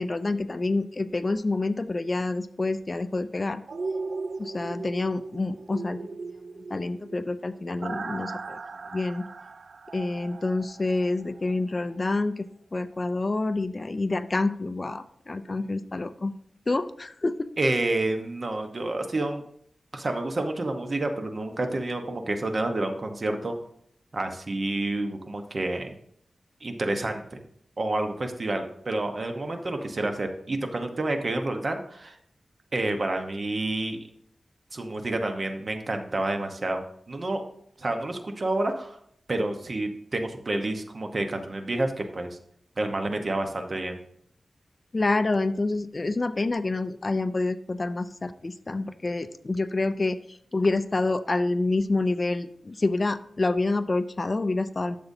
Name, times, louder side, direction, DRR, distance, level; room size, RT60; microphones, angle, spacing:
voice 1, 0.0-3.6 4.4-6.3 6.7-8.6 8.9-9.2 9.9-12.5 12.7-16.3 16.7-17.3 44.9-55.0, left 2 dB, 35° left, 12 dB, 0.4 m, -27 dB
sound 1, 3.7-11.6 11.9-12.0, right 4 dB, 70° right, 0.3 m, -38 dB
voice 2, 17.6-19.4 19.9-23.5 24.1-25.9 26.6-27.4 27.8-32.1 32.7-34.0 34.7-37.4 37.8-39.0 39.3-42.4 42.8-44.0, right 2 dB, 45° right, 5 dB, 1.0 m, -29 dB
12.0 x 6.8 x 2.7 m, 0.68 s
wide cardioid pair, 110°, 0 cm